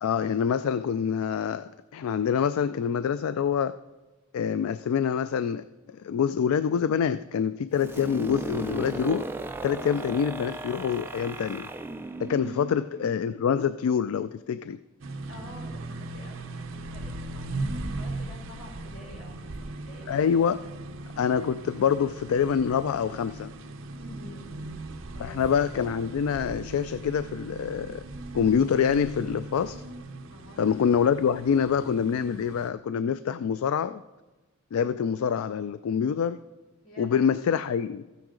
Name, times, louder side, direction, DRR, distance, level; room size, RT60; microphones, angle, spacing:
voice 1, 0.0-3.8 4.3-9.3 9.6-11.7 12.2-14.8 20.1-20.6 21.2-23.5 25.2-28.0 28.3-29.8 30.6-34.0 34.7-36.4 37.0-38.1, left 7 dB, 90° left, 13 dB, 0.3 m, -26 dB
sound 1, 7.8-13.5, right 2 dB, 10° right, 0.4 m, -36 dB
sound 2, 15.0-32.7, right 2 dB, 70° right, 0.8 m, -39 dB
voice 2, 15.3-20.2 20.6-20.7 24.0-25.4 30.3-30.6 36.8-37.4, left 1 dB, 70° left, -1 dB, 3.8 m, -48 dB
13.5 x 9.0 x 3.8 m, 1.1 s
head